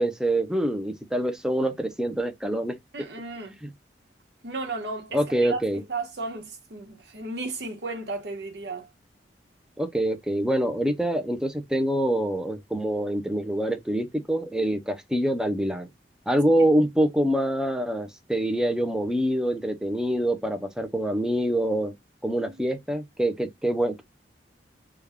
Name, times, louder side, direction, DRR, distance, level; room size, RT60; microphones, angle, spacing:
voice 1, 0.0-2.8 3.6-3.7 5.1-5.8 9.8-15.9 16.3-21.9 22.2-24.0, right 1 dB, 5° right, 0.5 m, -25 dB
voice 2, 2.9-3.6 4.4-8.9 22.5-22.6, right 3 dB, 65° right, 1.1 m, -34 dB
3.4 x 2.2 x 3.5 m
head